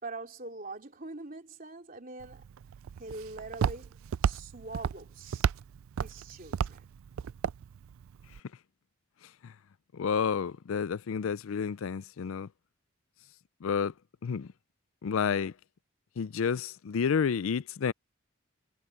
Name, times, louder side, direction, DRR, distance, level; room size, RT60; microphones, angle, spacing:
voice 1, 0.0-2.5 3.0-5.5 6.0-6.8, right 3 dB, 40° right, 3.4 m, -43 dB
Walk footsteps, 2.2-8.4, right 7 dB, 85° right, 0.4 m, -34 dB
voice 2, 9.9-12.5 13.6-13.9 14.2-14.5 15.0-15.5 16.2-17.9, left 6 dB, 85° left, 0.4 m, -30 dB
head